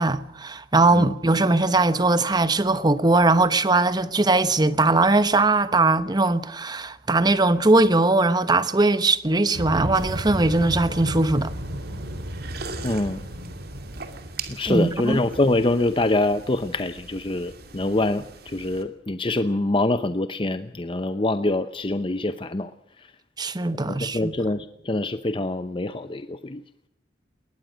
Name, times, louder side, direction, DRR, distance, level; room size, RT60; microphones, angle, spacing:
voice 1, 0.0-11.5 14.7-15.2 23.4-24.3, right 2 dB, 25° right, 1.0 m, -20 dB
sound 1, 9.5-14.9, equal, 85° right, 3.0 m, -34 dB
sound 2, 9.9-18.8, right 3 dB, 60° right, 2.5 m, -41 dB
voice 2, 12.8-13.2 14.5-22.7 23.8-26.6, left 2 dB, 30° left, 0.7 m, -25 dB
21.0 x 19.5 x 6.3 m
head